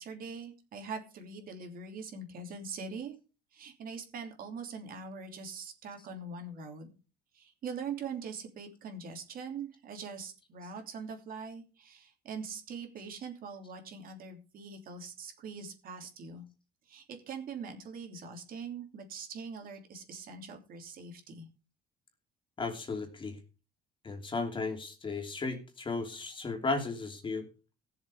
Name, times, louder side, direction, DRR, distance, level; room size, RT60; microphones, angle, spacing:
voice 1, 0.0-3.2 3.5-6.9 7.3-16.4 16.9-21.5, right 5 dB, 60° right, 4 dB, 3.0 m, -42 dB
voice 2, 22.6-23.4 24.0-27.4, left 3 dB, 30° left, 4 dB, 3.0 m, -35 dB
16.0 x 7.3 x 4.9 m, 0.33 s
cardioid pair, 110°, 17 cm